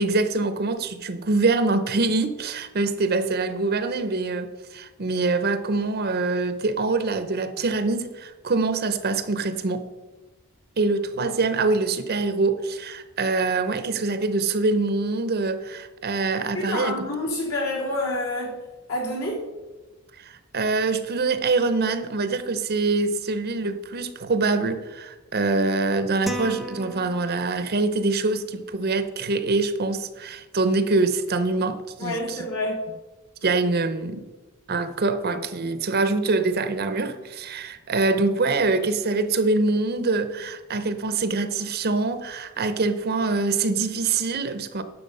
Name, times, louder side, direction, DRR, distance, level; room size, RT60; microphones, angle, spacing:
voice 1, 0.0-9.9 10.8-17.1 20.2-32.4 33.4-34.3 34.7-44.8, right 3 dB, 45° right, 10 dB, 0.7 m, -24 dB
voice 2, 16.5-18.6 18.9-19.4 32.0-32.8, left 1 dB, 65° left, -3 dB, 3.6 m, -28 dB
sound 1, 26.3-27.8, equal, ahead, 0.7 m, -34 dB
10.0 x 7.0 x 5.5 m, 1.1 s
head